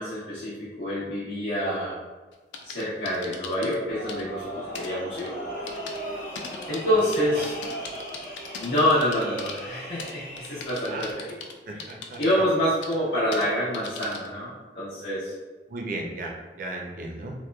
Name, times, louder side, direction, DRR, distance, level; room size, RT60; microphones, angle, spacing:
voice 1, 0.0-2.0 2.6-5.3 6.7-7.6 8.6-11.3 11.7-11.8 12.2-15.3, equal, 75° left, -13 dB, 0.9 m, -27 dB
sound 1, 2.3-3.8 4.1-4.2 4.8-4.9 5.2-5.3 5.7-6.0 6.4-9.6 10.0-11.5 11.8-12.3 12.8-13.0 13.3-13.5 13.7-14.3, left 5 dB, 90° left, 0.3 m, -39 dB
sound 2, 3.9-11.1, right 1 dB, 45° left, 0.8 m, -38 dB
voice 2, 11.7-12.2 15.7-17.3, right 2 dB, 50° right, 0 dB, 0.4 m, -35 dB
2.9 x 2.1 x 2.2 m, 1.3 s
head